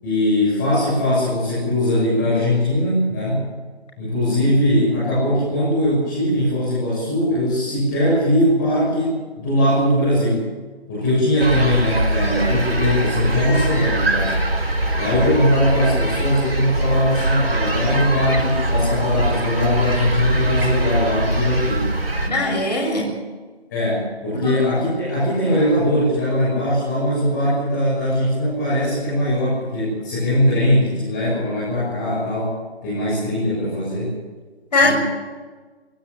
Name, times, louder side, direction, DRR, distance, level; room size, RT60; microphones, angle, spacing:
voice 1, 0.0-3.5 4.0-10.4 10.9-14.4 14.9-21.9 22.2-22.5 23.7-32.6 32.8-34.1 34.8-34.9, left 1 dB, 20° left, -8 dB, 7.1 m, -20 dB
sound 1, 11.4-22.3, right 1 dB, 60° right, 4.4 m, -22 dB
voice 2, 22.3-23.1 24.4-24.6 34.7-34.9, left 2 dB, 40° left, 1 dB, 7.2 m, -19 dB
20.5 x 17.0 x 8.9 m, 1.4 s
figure-of-eight pair, 160°, 32 cm